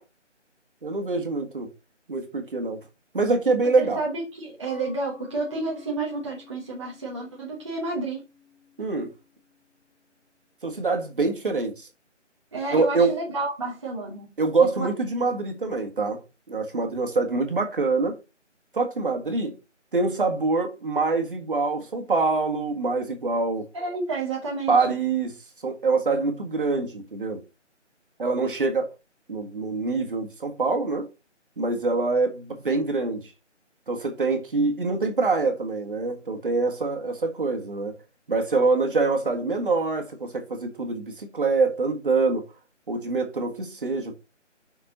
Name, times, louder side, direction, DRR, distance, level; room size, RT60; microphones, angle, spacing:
voice 1, 0.8-1.7 2.1-2.8 3.1-4.0 8.8-9.1 10.6-11.9 12.7-13.2 14.4-18.2 18.7-19.6 19.9-23.7 24.7-27.4 28.2-28.9 29.3-31.1 31.6-33.3 33.9-38.0 38.3-42.4 42.9-44.1, right 3 dB, 45° right, 2.0 m, -25 dB
voice 2, 3.6-8.2 12.5-14.3 14.6-14.9 15.2-15.3 23.7-24.8, right 3 dB, 25° right, 1.4 m, -30 dB
Mallet percussion, 4.7-10.0, left 6 dB, 10° left, 2.3 m, -51 dB
6.0 x 5.3 x 5.8 m
figure-of-eight pair, 170°, 37 cm